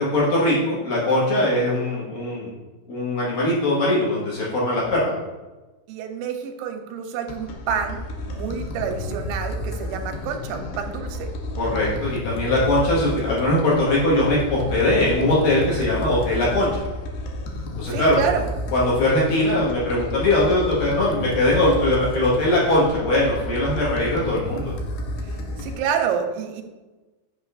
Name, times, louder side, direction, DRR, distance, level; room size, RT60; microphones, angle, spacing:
voice 1, 0.0-2.5 2.9-5.1 11.6-16.7 17.8-18.2 18.7-24.7, left 1 dB, 60° left, -6 dB, 2.7 m, -21 dB
voice 2, 5.9-11.3 17.9-18.5 25.6-26.6, right 7 dB, 90° right, 5 dB, 3.0 m, -28 dB
sound 1, 7.3-25.8, left 1 dB, 85° left, 2.2 m, -31 dB
7.9 x 6.2 x 2.5 m, 1.1 s
omnidirectional pair, 5.3 m